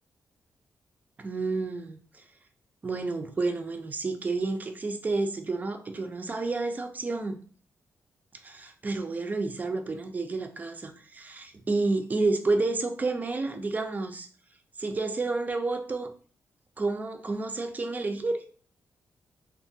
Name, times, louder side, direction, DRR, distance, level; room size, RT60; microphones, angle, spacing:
voice 1, 1.2-2.0 2.8-7.4 8.4-14.3 14.8-16.1 16.8-18.4, right 3 dB, 30° right, 0.3 m, -30 dB
2.3 x 2.2 x 2.6 m
cardioid pair, 110°, 6 cm